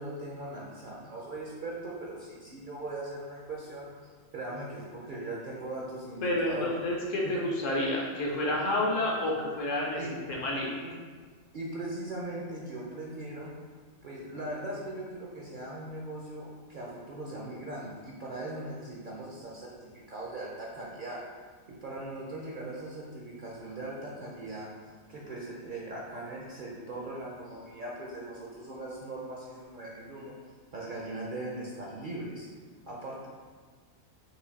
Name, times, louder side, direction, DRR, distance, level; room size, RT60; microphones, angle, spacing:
voice 1, 0.0-3.9 4.3-6.8 7.2-7.3 10.0-10.1 10.8-10.9 11.5-13.5 14.0-21.2 21.7-24.7 25.1-30.4 30.7-32.5 32.9-33.3, right 2 dB, 55° right, -4 dB, 0.6 m, -39 dB
voice 2, 6.2-10.0 10.4-10.7, left 1 dB, 70° left, -3 dB, 1.1 m, -29 dB
4.8 x 2.6 x 3.9 m, 1.5 s
omnidirectional pair, 1.4 m